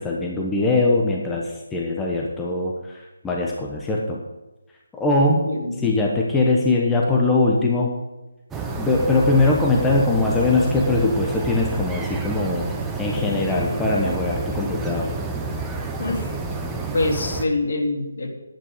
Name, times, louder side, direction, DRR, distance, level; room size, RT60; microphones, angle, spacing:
voice 1, 0.0-4.2 4.9-5.5 5.8-7.9 8.8-12.7 13.0-15.1, left 2 dB, 10° left, -2 dB, 1.1 m, -21 dB
voice 2, 5.3-5.8 16.0-16.3 16.9-18.3, left 2 dB, 60° left, 0 dB, 2.9 m, -24 dB
sound 1, 8.5-17.5, right 3 dB, 10° right, 0.9 m, -29 dB
11.0 x 8.9 x 5.1 m, 1.1 s
figure-of-eight pair, 150°, 0 cm